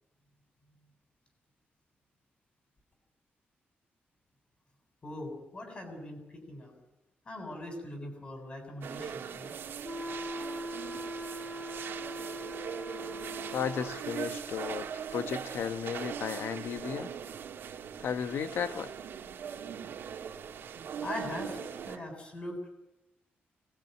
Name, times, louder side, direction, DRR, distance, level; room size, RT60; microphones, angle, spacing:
voice 1, 5.0-6.7 7.2-9.6 20.6-20.7 21.0-22.7, left 1 dB, 30° left, 4 dB, 7.4 m, -41 dB
sound 1, 8.8-22.0, right 7 dB, 75° right, 2.3 m, -40 dB
sound 2, 9.8-14.1, equal, ahead, 2.0 m, -40 dB
voice 2, 13.5-17.1 18.0-18.9, left 7 dB, 85° left, 10 dB, 1.2 m, -34 dB
23.5 x 20.0 x 9.2 m, 0.96 s
wide cardioid pair, 170°, 4 cm